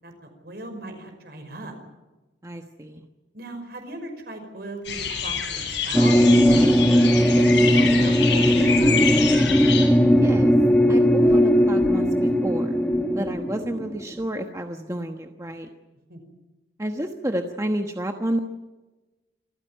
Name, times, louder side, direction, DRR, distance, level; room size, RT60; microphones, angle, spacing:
voice 1, 0.0-1.8 3.3-6.8 7.2-9.0 16.1-16.3, right 1 dB, 55° right, 6 dB, 5.5 m, -36 dB
voice 2, 2.4-3.1 10.1-10.5 10.9-12.8 13.1-15.7 16.8-18.4, right 1 dB, 15° right, 4 dB, 1.2 m, -30 dB
sound 1, 4.8-9.9, left 7 dB, 75° left, 7.4 m, -27 dB
sound 2, 5.9-14.1, equal, 5° left, 1.1 m, -18 dB
27.0 x 15.0 x 9.1 m, 1.1 s
head